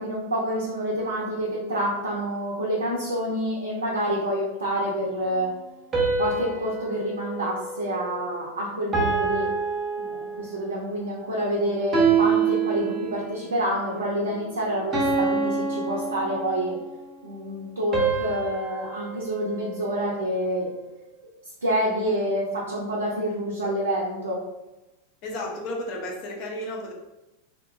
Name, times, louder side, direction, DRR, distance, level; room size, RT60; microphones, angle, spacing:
voice 1, 0.0-5.5 6.2-9.5 10.0-16.8 17.2-20.7 21.6-24.4, equal, 70° right, -5 dB, 0.5 m, -27 dB
sound 1, 5.9-8.4 8.9-10.7 11.9-13.5 14.9-16.8 17.9-20.3, right 5 dB, 25° right, 0.6 m, -27 dB
voice 2, 25.2-26.9, left 1 dB, 40° left, -2 dB, 0.6 m, -33 dB
2.8 x 2.1 x 2.4 m, 0.98 s
figure-of-eight pair, 90°, 0 cm